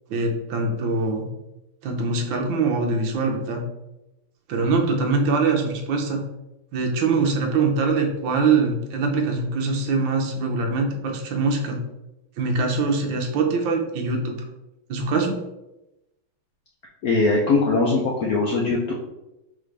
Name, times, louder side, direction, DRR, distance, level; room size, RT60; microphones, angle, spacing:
voice 1, 0.1-1.3 1.8-3.6 4.5-6.2 6.7-11.8 12.4-14.4 14.9-15.3, right 4 dB, 70° right, 2 dB, 1.3 m, -23 dB
voice 2, 17.0-18.9, left 3 dB, 85° left, -3 dB, 0.8 m, -21 dB
4.0 x 3.7 x 3.2 m, 0.94 s
omnidirectional pair, 2.4 m